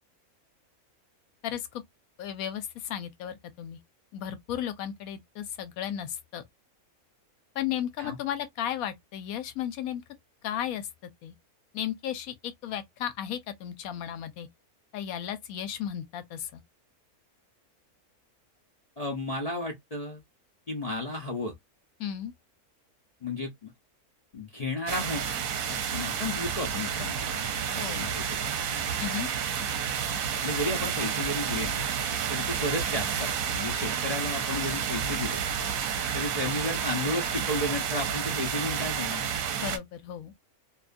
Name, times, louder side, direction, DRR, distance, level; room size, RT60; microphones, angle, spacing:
voice 1, 1.4-1.8 2.2-3.8 4.1-6.4 7.6-10.0 10.4-10.9 11.2-11.3 11.7-14.5 14.9-16.6 22.0-22.3 27.8-28.0 29.0-29.3 39.6-40.3, left 10 dB, 75° left, 1.0 m, -34 dB
voice 2, 19.0-20.2 20.7-21.5 23.2-23.7 24.3-25.2 25.7-27.4 27.7-28.2 28.6-28.8 30.4-31.8 32.3-35.4 36.1-39.3, left 2 dB, 40° left, 0.5 m, -33 dB
sound 1, 24.9-39.8, right 7 dB, 70° right, 1.0 m, -30 dB
2.6 x 2.3 x 2.4 m
omnidirectional pair, 1.5 m